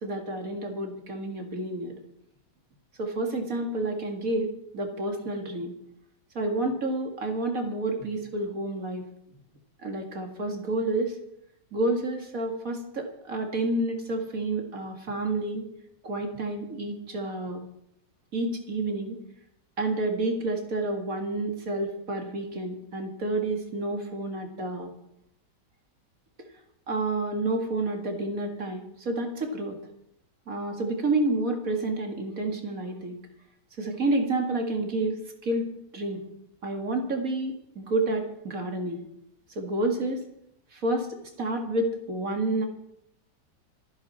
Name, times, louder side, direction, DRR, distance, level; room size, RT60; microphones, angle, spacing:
voice 1, 0.0-1.9 3.0-5.7 6.4-9.0 9.8-11.2 11.7-15.6 16.0-17.6 18.3-19.2 19.8-24.9 26.9-29.8 30.5-33.2 33.8-35.7 35.9-36.2 36.6-39.0 39.6-40.2 40.7-41.1 41.4-42.7, right 2 dB, 50° right, 4 dB, 2.4 m, -29 dB
26.5 x 10.5 x 4.3 m, 0.76 s
omnidirectional pair, 1.9 m